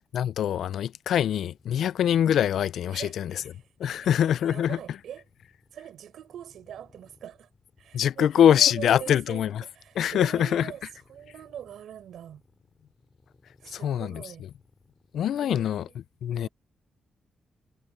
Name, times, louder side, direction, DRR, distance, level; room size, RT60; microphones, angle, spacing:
voice 1, 0.1-3.3 3.8-4.8 7.9-9.6 10.0-10.7 13.7-14.2 15.1-15.9 16.2-16.5, left 9 dB, 75° left, 0.4 m, -24 dB
voice 2, 2.9-4.1 4.4-5.2 5.7-7.5 7.8-10.8 11.1-12.4 13.6-14.5 15.4-15.9 16.3-16.5, right 10 dB, 80° right, 5.1 m, -43 dB
sound 1, 3.5-15.3, left 3 dB, 25° left, 4.6 m, -62 dB
wide cardioid pair, 165°, 0 cm